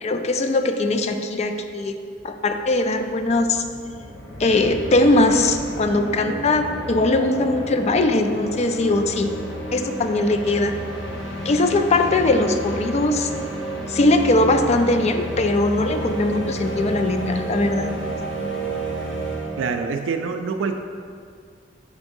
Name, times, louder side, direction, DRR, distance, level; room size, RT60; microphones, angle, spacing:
voice 1, 0.0-2.0 2.2-3.6 4.4-9.3 9.7-10.8 11.4-13.3 13.9-17.9, left 2 dB, 35° left, 7 dB, 0.4 m, -20 dB
sound 1, 2.2-2.3 2.5-20.0, right 1 dB, 70° left, 0.8 m, -31 dB
voice 2, 19.6-20.8, right 5 dB, 80° right, 5 dB, 0.3 m, -25 dB
5.0 x 3.6 x 5.3 m, 2.2 s
head